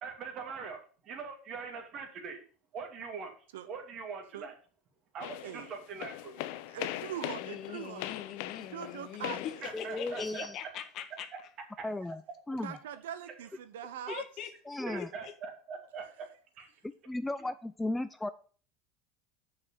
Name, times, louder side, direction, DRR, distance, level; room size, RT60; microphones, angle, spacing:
voice 1, 0.0-2.4 2.7-3.3 3.7-4.5 5.1-6.4 9.6-10.5 11.3-11.4 14.8-16.3 16.6-16.7, right 5 dB, 50° right, 2.5 m, -42 dB
sound 1, 5.2-10.5, left 14 dB, 70° left, 0.6 m, -41 dB
voice 2, 5.4-5.7 6.7-8.1 8.7-9.9 12.6-14.2 16.7-16.8, right 10 dB, 90° right, 0.8 m, -42 dB
voice 3, 7.4-11.3 14.1-14.5 15.0-15.3, left 10 dB, 50° left, 1.4 m, -42 dB
voice 4, 9.7-10.6 11.8-12.2 12.5-12.7 14.7-15.1 17.1-18.3, left 2 dB, 10° left, 0.4 m, -35 dB
6.5 x 5.9 x 7.0 m
supercardioid pair, 105°, 0 cm